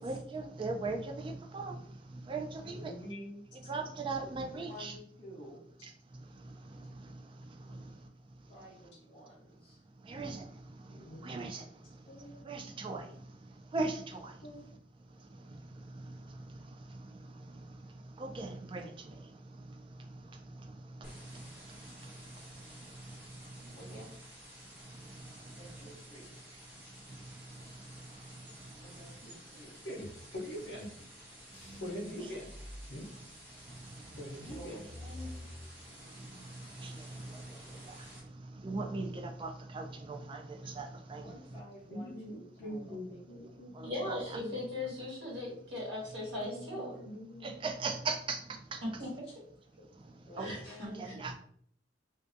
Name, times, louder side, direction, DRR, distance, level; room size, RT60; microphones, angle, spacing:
voice 1, 0.0-1.8 2.3-2.9 3.7-4.9 10.1-10.4 11.2-11.6 12.5-13.1 13.7-14.3 18.2-18.9 36.8-36.9 38.6-41.3 43.7-44.2 47.4-48.4 48.7-48.8 50.4-50.5 50.9-51.3, right 3 dB, 30° right, 3 dB, 0.3 m, -38 dB
voice 2, 2.6-4.4 6.7-6.8 10.9-11.6 12.1-12.4 14.4-14.6 29.8-30.9 31.5-32.5 32.9-33.1 34.2-34.8 41.9-44.5 46.3-47.6 50.4-50.8, equal, 75° left, -6 dB, 0.7 m, -44 dB
voice 3, 4.5-5.6 7.6-7.8 8.5-9.8 23.6-24.2 25.6-26.5 28.8-29.8 34.5-35.4 41.2-43.6 50.2-51.1, equal, 35° left, -8 dB, 0.7 m, -52 dB
sound 1, 21.0-38.2, equal, 10° right, 0.7 m, -53 dB
sound 2, 31.5-33.6 34.0-36.6 36.9-37.5, left 1 dB, 15° left, 1.1 m, -49 dB
voice 4, 43.8-46.9 48.8-49.1 50.4-51.2, left 1 dB, 85° right, -4 dB, 1.2 m, -38 dB
2.6 x 2.3 x 2.5 m, 0.64 s
head